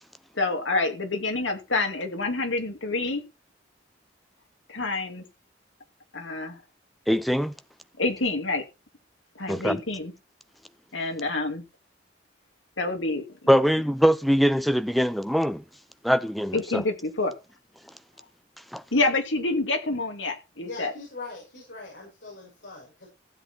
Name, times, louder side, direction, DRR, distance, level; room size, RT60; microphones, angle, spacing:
voice 1, 0.3-3.2 4.7-5.2 6.1-6.6 8.0-8.6 9.4-10.1 10.9-11.6 12.8-13.6 16.5-17.3 18.9-20.9, left 2 dB, 85° left, 2.7 m, -27 dB
voice 2, 7.1-7.5 9.5-9.8 13.5-15.6 16.0-16.8 18.7-18.8, equal, ahead, 0.6 m, -22 dB
voice 3, 20.6-23.1, left 3 dB, 65° left, 6.1 m, -41 dB
15.0 x 8.1 x 4.5 m
head